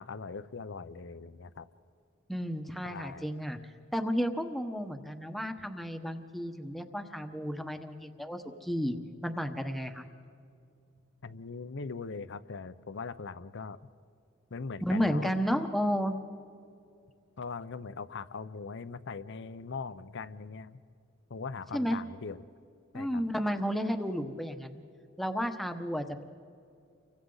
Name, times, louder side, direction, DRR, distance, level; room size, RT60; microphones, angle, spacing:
voice 1, 0.0-1.7 2.8-3.3 11.2-13.8 14.5-15.3 17.4-20.8 21.3-22.4 22.9-23.2, left 4 dB, 60° left, 14 dB, 0.7 m, -40 dB
voice 2, 2.3-3.6 3.9-9.0 9.2-10.1 14.8-16.1 21.7-22.0 22.9-24.8 25.2-26.2, equal, ahead, 6 dB, 1.1 m, -32 dB
30.0 x 24.0 x 4.0 m, 2.5 s
head